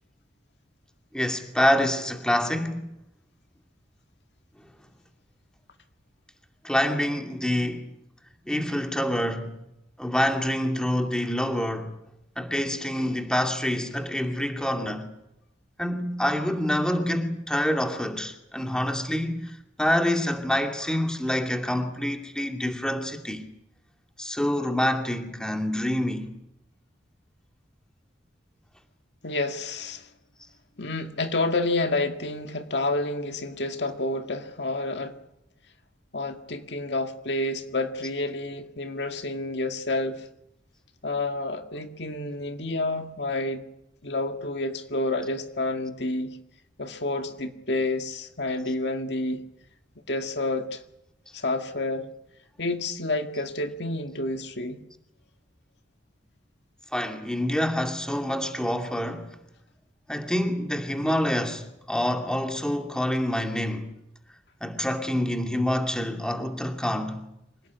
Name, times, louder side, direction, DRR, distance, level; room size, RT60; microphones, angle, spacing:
voice 1, 1.1-3.0 6.6-7.8 8.5-9.6 10.0-12.0 12.4-15.1 15.8-23.4 24.2-26.3 56.9-59.4 60.1-63.9 64.6-67.3, left 1 dB, 5° left, 2.5 m, -27 dB
voice 2, 29.2-30.1 30.8-35.1 36.1-40.2 41.0-43.6 44.0-46.4 46.8-49.4 50.1-50.8 51.3-52.1 52.6-54.8, left 2 dB, 65° left, 2.0 m, -29 dB
26.5 x 18.0 x 9.5 m
head